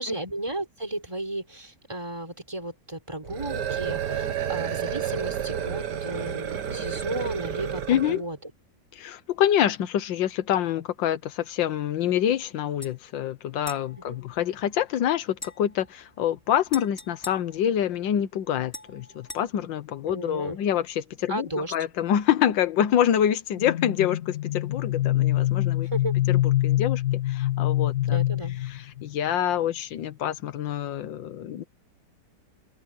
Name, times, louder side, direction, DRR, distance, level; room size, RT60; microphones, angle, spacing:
voice 1, 0.0-8.4 14.0-14.2 20.1-20.6 21.3-21.7 25.8-26.2 28.1-28.6, right 1 dB, 15° right, 4.3 m, -34 dB
sound 1, 3.2-8.2, right 8 dB, 65° right, 1.9 m, -30 dB
voice 2, 7.9-8.2 8.9-25.9 26.3-28.2 28.7-31.6, left 10 dB, 90° left, 1.7 m, -26 dB
sound 2, 12.8-13.0 13.6-14.9 15.3-18.2 18.7-19.4, left 2 dB, 10° left, 3.7 m, -44 dB
sound 3, 23.6-29.2, left 14 dB, 45° left, 2.3 m, -25 dB
open air
omnidirectional pair, 2.0 m